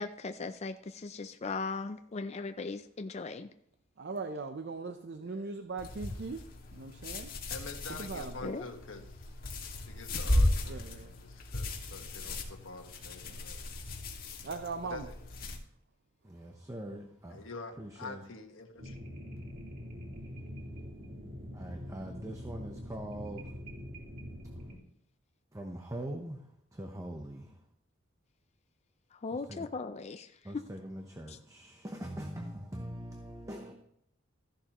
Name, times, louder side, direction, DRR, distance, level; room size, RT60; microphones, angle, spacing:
voice 1, 0.0-3.5 8.4-8.6 29.1-30.7 31.3-31.4, left 4 dB, 35° left, 0.5 m, -38 dB
voice 2, 4.0-6.4 6.7-7.3 7.9-8.6 10.7-11.1 13.3-13.4 14.4-15.1, right 4 dB, 55° right, 0.6 m, -39 dB
voice 3, 5.2-5.6 7.5-9.2 9.8-13.7 14.8-15.2 17.3-19.0, left 3 dB, 75° left, 1.5 m, -47 dB
sound 1, 5.8-15.6, left 1 dB, 50° left, 1.9 m, -35 dB
voice 4, 16.2-17.5 17.8-18.2 21.5-23.6 24.5-24.7 25.5-27.6 29.3-29.7 30.4-33.7, right 1 dB, 15° right, 0.9 m, -42 dB
sound 2, 18.8-24.8, equal, 90° right, 3.7 m, -44 dB
14.5 x 11.0 x 3.0 m
head